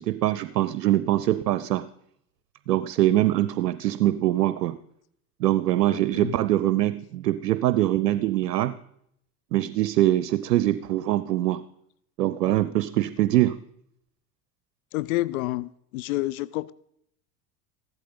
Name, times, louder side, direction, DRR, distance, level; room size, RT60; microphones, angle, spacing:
voice 1, 0.0-1.8 2.7-4.8 5.4-8.7 9.5-11.6 12.2-13.6, right 14 dB, 75° right, 0.7 m, -23 dB
voice 2, 14.9-16.7, left 18 dB, 65° left, 0.6 m, -28 dB
15.0 x 12.5 x 4.0 m
figure-of-eight pair, 75°, 48 cm